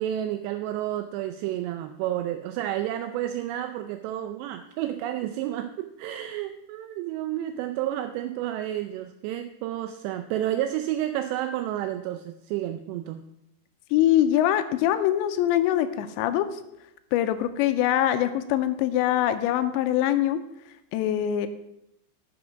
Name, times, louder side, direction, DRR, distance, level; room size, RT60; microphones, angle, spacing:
voice 1, 0.0-13.2, right 12 dB, 85° right, 8 dB, 2.5 m, -30 dB
voice 2, 13.9-16.5 17.1-20.4 20.9-21.5, left 12 dB, 85° left, 10 dB, 2.7 m, -23 dB
12.0 x 6.1 x 5.0 m, 0.82 s
omnidirectional pair, 5.4 m